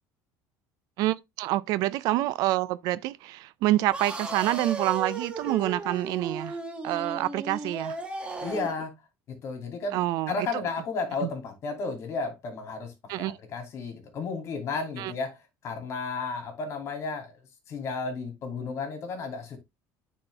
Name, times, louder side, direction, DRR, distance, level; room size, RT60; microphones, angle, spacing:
voice 1, 1.0-6.6 6.8-8.0 9.9-10.6 11.2-11.3 13.1-13.4 15.0-15.1, right 15 dB, 65° right, 0.4 m, -27 dB
sound 1, 3.9-8.8, right 3 dB, 15° right, 1.3 m, -35 dB
voice 2, 8.4-8.9 9.4-10.0 10.3-15.3 15.6-17.3 17.7-19.6, left 4 dB, 40° left, 2.6 m, -33 dB
8.9 x 4.3 x 3.3 m
cardioid pair, 150°, 7 cm